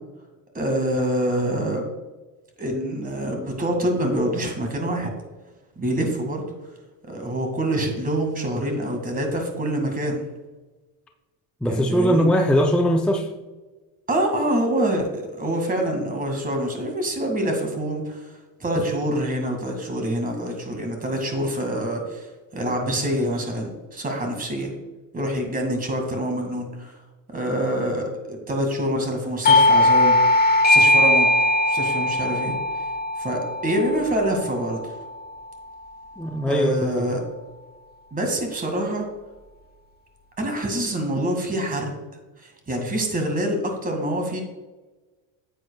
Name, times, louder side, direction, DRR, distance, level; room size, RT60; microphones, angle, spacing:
voice 1, 0.5-1.8 2.6-5.1 5.8-6.5 7.0-10.3 11.6-12.3 14.1-18.3 18.6-22.3 22.5-24.7 25.1-26.9 27.3-30.2 30.7-31.3 31.7-32.6 33.2-35.0 36.5-37.2 38.1-39.1 40.4-41.9 42.4-44.4, right 1 dB, 20° right, 3 dB, 2.0 m, -26 dB
voice 2, 11.6-13.3 36.2-37.1, equal, 5° left, 3 dB, 0.5 m, -20 dB
Doorbell, 29.4-34.7, left 1 dB, 25° left, 1.0 m, -19 dB
9.8 x 7.9 x 2.3 m, 1.2 s
supercardioid pair, 115°, 40 cm